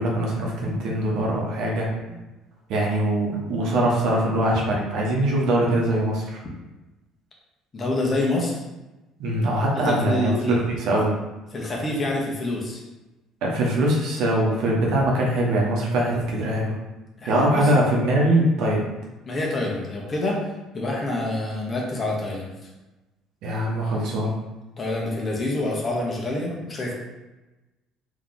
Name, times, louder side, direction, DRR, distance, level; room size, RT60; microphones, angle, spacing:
voice 1, 0.0-1.9 2.7-6.4 9.2-11.1 13.4-16.8 17.2-18.9 23.4-24.4, right 1 dB, 60° right, -2 dB, 1.0 m, -22 dB
voice 2, 7.7-8.6 9.7-10.6 11.5-12.8 17.2-17.7 19.2-20.4 20.7-22.5 24.8-26.9, left 2 dB, 35° left, -2 dB, 1.2 m, -27 dB
3.6 x 3.1 x 4.0 m, 1.1 s
figure-of-eight pair, 55°, 0 cm